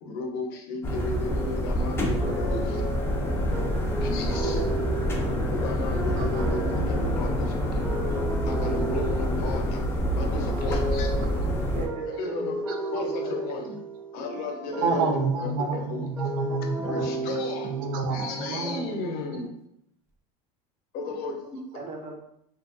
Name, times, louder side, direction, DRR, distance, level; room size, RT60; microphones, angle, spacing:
voice 1, 0.0-3.7 4.0-4.6 5.5-8.0 8.4-9.9 10.2-11.1 12.1-12.6 12.9-13.8 14.1-15.1 15.4-16.1 16.9-17.7 18.1-19.5 20.9-21.6, left 3 dB, 60° left, 3 dB, 0.6 m, -34 dB
sound 1, 0.8-11.9, equal, 15° left, 0.4 m, -27 dB
sound 2, 2.1-19.3, right 2 dB, 15° right, 1.0 m, -34 dB
voice 2, 4.3-4.8 5.1-5.5 7.0-7.1 11.6-12.0 13.0-13.4 14.9-15.0 15.6-15.7 16.9-17.1 18.5-18.6 21.7-22.2, right 4 dB, 45° right, -1 dB, 0.8 m, -37 dB
voice 3, 14.8-17.1 17.7-19.2, right 4 dB, 70° right, 4 dB, 0.5 m, -29 dB
2.6 x 2.4 x 2.3 m, 0.73 s
supercardioid pair, 115°, 18 cm